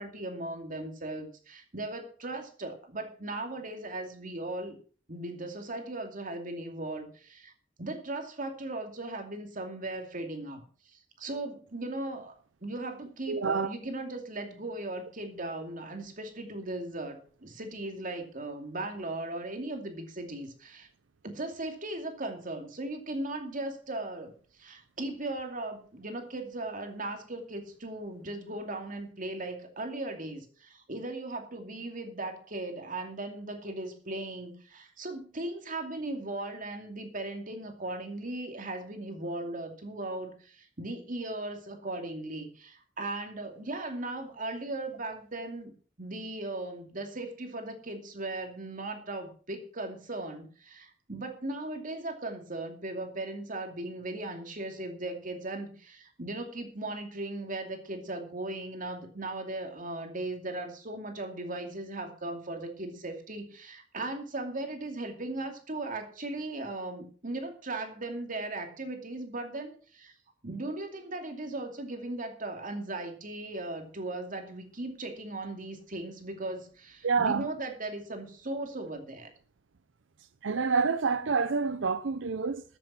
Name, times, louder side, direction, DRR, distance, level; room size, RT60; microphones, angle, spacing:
voice 1, 0.0-4.8 5.1-7.5 7.8-10.6 10.9-12.3 12.6-20.9 21.2-24.3 24.6-45.7 46.0-70.1 70.4-79.3, right 2 dB, 45° right, 2.6 m, -37 dB
voice 2, 13.3-13.7 77.0-77.5 80.4-82.6, right 5 dB, 90° right, 0.6 m, -27 dB
14.5 x 7.5 x 6.0 m
head